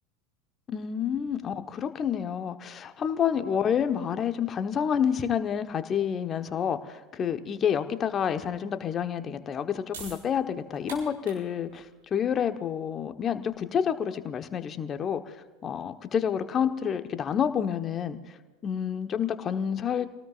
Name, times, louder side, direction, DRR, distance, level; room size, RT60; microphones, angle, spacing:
voice 1, 0.7-11.8 12.1-15.2 15.6-18.2 18.6-20.1, left 8 dB, 30° left, 9 dB, 1.1 m, -28 dB
sound 1, 9.9-16.2, right 3 dB, 70° right, 6.4 m, -49 dB
28.0 x 18.5 x 2.5 m, 1.2 s
figure-of-eight pair, 80°, 0 cm